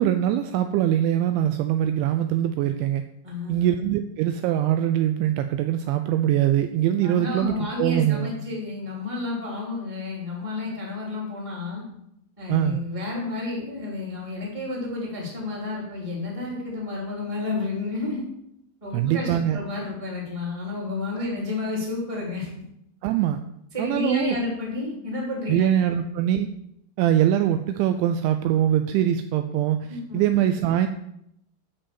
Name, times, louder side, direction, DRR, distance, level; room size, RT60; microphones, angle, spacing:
voice 1, 0.0-3.0 3.5-8.3 12.5-12.8 18.9-19.6 21.2-21.3 23.0-23.4 23.8-24.4 25.5-26.5 27.0-30.9, right 11 dB, 90° right, 8 dB, 2.6 m, -23 dB
voice 2, 3.2-3.7 7.0-11.8 12.4-18.2 18.8-22.5 23.7-25.7 29.9-30.3, left 3 dB, 10° right, -3 dB, 2.3 m, -31 dB
13.0 x 5.4 x 7.3 m, 0.77 s
omnidirectional pair, 6.0 m